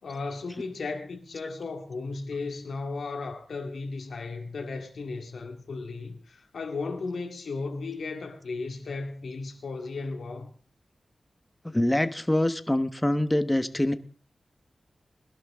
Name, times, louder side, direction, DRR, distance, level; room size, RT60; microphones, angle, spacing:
voice 1, 0.0-10.5, left 3 dB, 85° left, 2.1 m, -35 dB
voice 2, 11.6-13.9, left 1 dB, 15° left, 1.3 m, -25 dB
20.5 x 12.0 x 3.7 m
cardioid pair, 65°, 0 cm